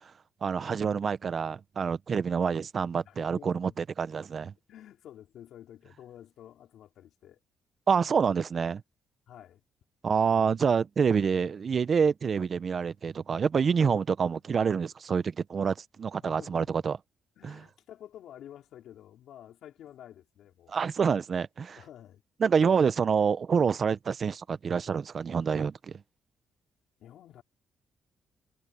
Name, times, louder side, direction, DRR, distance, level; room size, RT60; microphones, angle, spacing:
voice 1, 0.4-4.5 7.9-8.8 10.0-17.0 17.4-17.6 20.7-21.8 22.4-26.0, right 6 dB, 45° right, 0.9 m, -27 dB
voice 2, 3.0-3.8 4.7-7.4 9.3-9.6 14.2-14.4 16.2-16.8 17.4-20.8 21.8-22.2 22.6-22.8 27.0-27.4, left 11 dB, 75° left, 4.8 m, -50 dB
cardioid pair, 90°, 0 cm